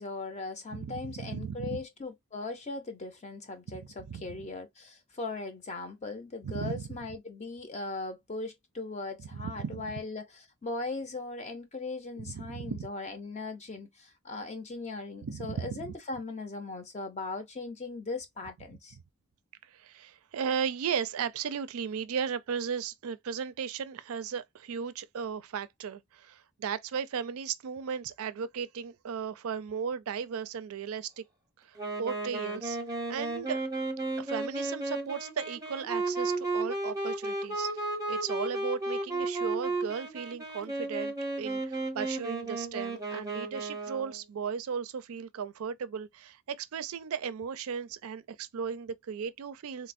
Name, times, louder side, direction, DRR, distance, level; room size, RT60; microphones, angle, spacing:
voice 1, 0.0-19.0, left 3 dB, 30° left, 0.5 m, -39 dB
voice 2, 0.7-1.8 4.1-4.4 6.4-6.8 9.3-9.9 12.2-12.9 15.2-15.9 19.6-31.2 31.6-32.8 33.1-33.6 34.2-49.9, right 7 dB, 70° right, 0.4 m, -36 dB
Wind instrument woodwind instrument, 31.8-44.2, right 2 dB, 15° right, 0.7 m, -34 dB
4.0 x 2.0 x 2.5 m
head